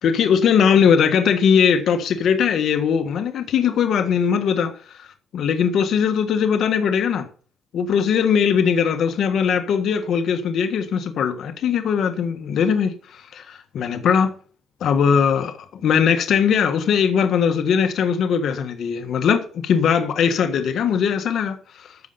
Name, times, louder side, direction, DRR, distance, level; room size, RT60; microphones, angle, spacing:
voice 1, 0.0-7.3 7.7-14.3 14.8-22.0, left 7 dB, 70° left, 1.4 m, -20 dB
13.5 x 5.4 x 6.9 m
cardioid pair, 90°, 0 cm